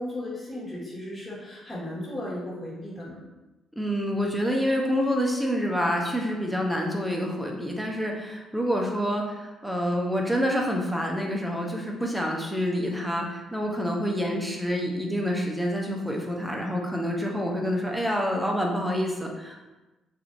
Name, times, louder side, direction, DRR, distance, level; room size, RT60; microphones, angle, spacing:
voice 1, 0.0-3.2, left 1 dB, 30° left, -7 dB, 1.4 m, -35 dB
voice 2, 3.8-19.6, equal, 5° right, 0 dB, 0.6 m, -27 dB
2.9 x 2.5 x 2.6 m, 1.1 s
supercardioid pair, 55°, 0 cm